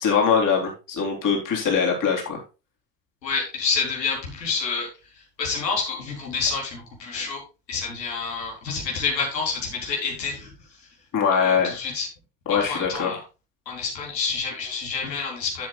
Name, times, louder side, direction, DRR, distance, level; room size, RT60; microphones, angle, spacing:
voice 1, 0.0-2.4 11.1-11.8 12.5-13.2, left 6 dB, 40° left, 0 dB, 4.1 m, -22 dB
voice 2, 3.2-4.9 5.1-7.4 7.7-10.9 11.3-12.1 12.5-13.2 13.7-15.7, left 5 dB, 80° left, -1 dB, 4.2 m, -28 dB
13.0 x 8.1 x 2.5 m, 0.30 s
figure-of-eight pair, 70°, 50 cm